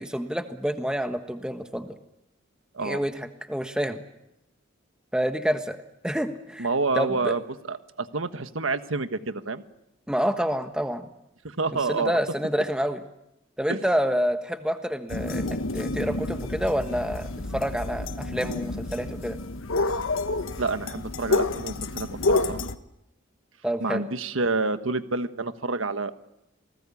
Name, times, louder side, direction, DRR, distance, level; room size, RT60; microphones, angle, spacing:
voice 1, 0.0-2.0 2.8-4.0 5.1-5.8 6.0-6.7 7.0-7.3 10.1-11.1 11.9-13.0 13.6-19.4 23.6-24.0, equal, 5° right, 7 dB, 1.4 m, -28 dB
voice 2, 6.6-9.6 11.4-12.2 13.7-13.8 20.6-22.6 23.8-26.1, right 3 dB, 90° right, 10 dB, 1.4 m, -28 dB
sound 1, 15.1-22.8, left 2 dB, 90° left, 1.3 m, -29 dB
28.0 x 19.5 x 8.6 m, 0.85 s
head